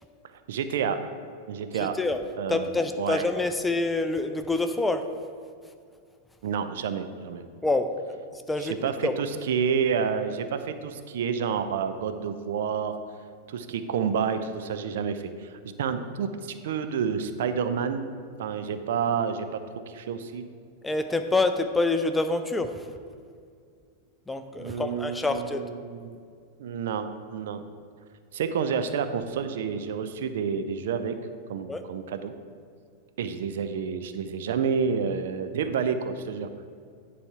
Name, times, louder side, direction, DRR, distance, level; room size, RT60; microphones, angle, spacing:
voice 1, 0.5-1.0 1.5-2.0 2.4-2.7 3.0-3.3 6.4-7.5 8.6-12.9 13.5-15.5 15.8-18.1 18.4-19.6 19.9-20.5 24.6-26.2 26.6-27.6 28.3-31.1 31.5-32.3 33.2-36.5, right 6 dB, 55° right, 9 dB, 0.5 m, -29 dB
voice 2, 1.7-2.2 2.5-5.1 7.6-7.9 8.3-8.7 9.0-9.1 20.8-22.9 24.3-25.7 31.7-31.8, left 2 dB, 10° left, 7 dB, 0.4 m, -26 dB
9.6 x 4.2 x 4.7 m, 2.2 s
figure-of-eight pair, 90°, 0 cm